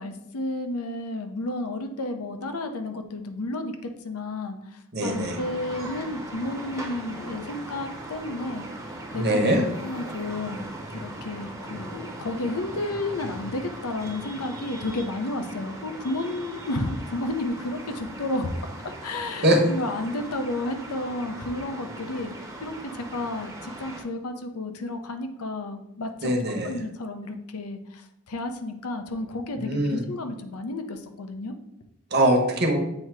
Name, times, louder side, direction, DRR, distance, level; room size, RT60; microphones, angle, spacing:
voice 1, 0.0-8.7 9.1-9.5 9.8-18.5 18.8-22.3 22.6-26.3 26.6-31.5, left 2 dB, 85° left, 7 dB, 0.7 m, -32 dB
voice 2, 4.9-5.4 9.1-9.6 19.4-19.6 26.2-26.7 29.6-30.0 32.1-32.8, right 1 dB, 45° right, 2 dB, 1.0 m, -22 dB
sound 1, 5.0-24.0, right 1 dB, 15° right, 0.7 m, -39 dB
7.7 x 2.8 x 4.6 m, 0.83 s
head